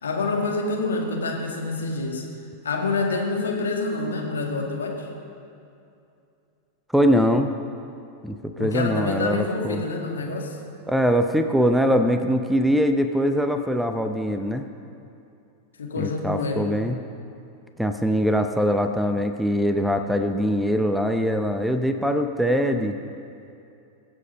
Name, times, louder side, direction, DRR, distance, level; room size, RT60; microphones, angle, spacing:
voice 1, 0.0-2.3 2.6-5.1 8.6-10.6 15.8-16.7, left 3 dB, 70° left, 0 dB, 2.1 m, -27 dB
voice 2, 6.9-7.5 8.2-9.8 10.9-14.7 16.0-17.0 17.8-23.0, equal, 5° right, 7 dB, 0.6 m, -22 dB
22.5 x 7.6 x 5.5 m, 2.6 s
figure-of-eight pair, 90°, 0 cm